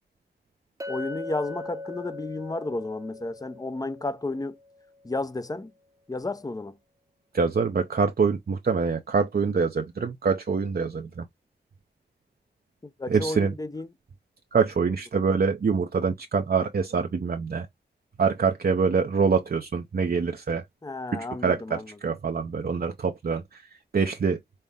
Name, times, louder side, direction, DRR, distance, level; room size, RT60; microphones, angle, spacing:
Chink clink, 0.8-5.0, left 2 dB, 15° right, 0.7 m, -40 dB
voice 1, 0.9-4.6 5.0-5.7 6.1-6.8 13.0-13.9 20.8-21.9, left 2 dB, 20° left, 0.6 m, -32 dB
voice 2, 7.3-11.3 13.1-13.5 14.5-17.7 18.2-20.6 21.1-23.6 23.9-24.4, right 5 dB, 55° right, 0.5 m, -25 dB
5.5 x 2.0 x 3.4 m
cardioid pair, 40°, 19 cm